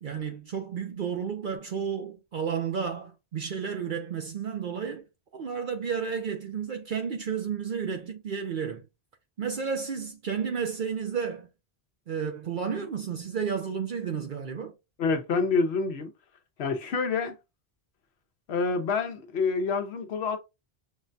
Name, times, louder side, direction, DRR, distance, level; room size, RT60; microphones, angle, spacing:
voice 1, 0.0-5.0 5.3-8.8 9.4-11.5 12.1-14.7, right 6 dB, 60° right, 0.7 m, -32 dB
voice 2, 15.0-16.1 16.6-17.4 18.5-20.4, left 4 dB, 75° left, 1.0 m, -27 dB
6.3 x 2.2 x 2.6 m
omnidirectional pair, 1.1 m